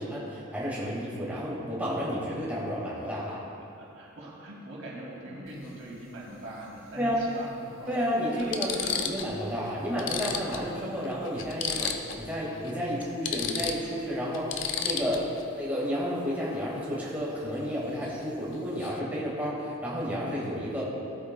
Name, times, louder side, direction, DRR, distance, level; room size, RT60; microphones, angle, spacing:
voice 1, 0.0-3.4 7.0-7.2 7.9-11.9 12.2-14.5 14.8-20.8, equal, 10° right, -7 dB, 1.8 m, -31 dB
voice 2, 3.8-7.9 8.4-8.9, right 1 dB, 75° right, -4 dB, 2.3 m, -42 dB
sound 1, 5.5-5.7 7.1-7.2 7.9-8.0 8.4-9.3 9.7-9.8 10.0-12.3 12.6-12.7 13.0-15.4 18.0-18.2 18.5-19.0, left 6 dB, 65° left, 0.6 m, -33 dB
16.0 x 8.2 x 2.3 m, 2.7 s
head